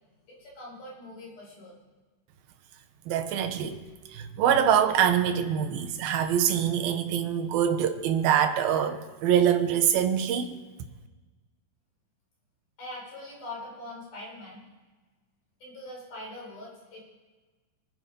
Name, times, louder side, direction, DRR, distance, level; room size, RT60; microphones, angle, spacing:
voice 1, 0.1-1.8 12.8-14.6 15.6-17.0, left 1 dB, 55° left, 7.4 m, -42 dB
voice 2, 3.1-3.8 4.1-10.5, right 9 dB, 80° right, 2.9 m, -24 dB
25.5 x 9.3 x 5.3 m
omnidirectional pair, 4.2 m